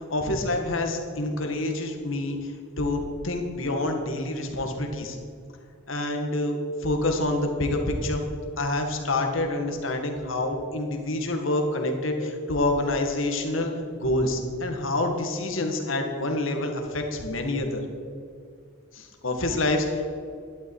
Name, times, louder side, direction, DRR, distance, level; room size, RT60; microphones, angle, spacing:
voice 1, 0.0-5.2 5.9-8.2 8.6-17.8 18.9-20.1, left 2 dB, 75° left, 4 dB, 1.8 m, -27 dB
12.0 x 11.0 x 4.8 m, 2.3 s
head